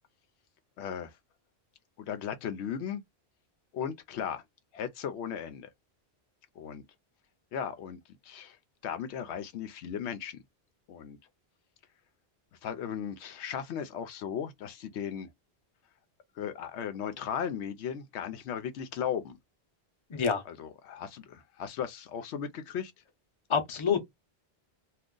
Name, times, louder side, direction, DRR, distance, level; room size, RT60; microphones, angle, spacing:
voice 1, 0.8-1.1 2.0-3.0 3.7-4.4 4.7-5.7 6.6-6.8 7.5-8.6 8.8-10.4 10.9-11.2 12.6-15.3 16.4-19.4 20.5-22.9, left 8 dB, 90° left, 0.9 m, -36 dB
voice 2, 20.1-20.4 23.5-24.0, left 6 dB, 35° left, 0.7 m, -27 dB
2.5 x 2.4 x 3.7 m
omnidirectional pair, 1.1 m